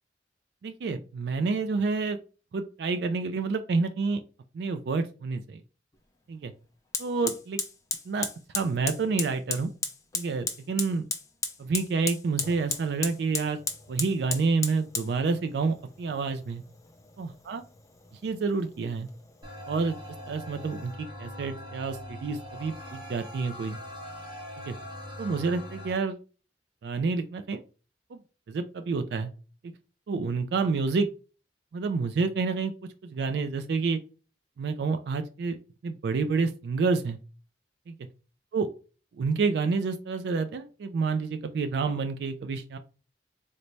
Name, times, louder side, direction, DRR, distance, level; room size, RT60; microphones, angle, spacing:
voice 1, 0.6-2.2 2.5-4.2 4.5-5.6 6.3-6.5 7.0-7.6 8.1-8.3 8.5-9.7 10.1-11.1 11.6-13.6 13.9-16.6 17.2-17.6 18.2-19.1 19.7-20.0 20.3-23.8 24.6-24.7 25.2-26.2 26.8-27.6 28.1-28.2 28.5-29.3 30.1-31.1 31.7-32.7 33.0-34.0 34.6-35.6 35.8-37.2 37.9-38.0 38.5-38.7 39.2-42.8, right 4 dB, 65° right, 8 dB, 0.3 m, -28 dB
Fire, 5.9-6.0 6.9-20.9, left 4 dB, 20° left, 0.4 m, -37 dB
sound 1, 19.4-25.9, left 1 dB, 25° right, 0.8 m, -42 dB
3.9 x 2.1 x 3.1 m, 0.35 s
head